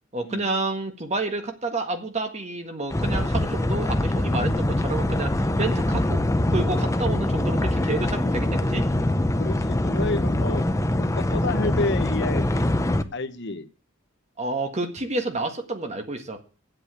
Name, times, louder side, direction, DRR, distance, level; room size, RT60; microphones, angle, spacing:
voice 1, 0.1-8.9 14.4-16.4, right 2 dB, 35° right, 6 dB, 1.7 m, -29 dB
sound 1, 2.9-13.0, left 1 dB, 15° left, 0.6 m, -23 dB
voice 2, 9.4-10.7 11.0-12.7 13.1-13.7, left 2 dB, 60° left, 11 dB, 1.0 m, -30 dB
8.4 x 8.0 x 8.3 m, 0.38 s
head